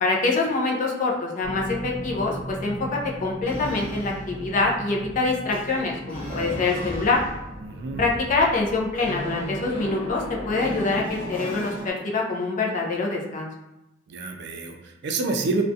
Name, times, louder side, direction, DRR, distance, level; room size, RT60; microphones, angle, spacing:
voice 1, 0.0-7.2 8.0-13.5, left 3 dB, 40° left, -1 dB, 0.4 m, -25 dB
sound 1, 1.4-11.9, equal, 25° left, 0.8 m, -35 dB
voice 2, 7.6-8.0 14.1-15.6, right 3 dB, 60° right, 3 dB, 0.3 m, -28 dB
2.4 x 2.1 x 2.6 m, 0.89 s
head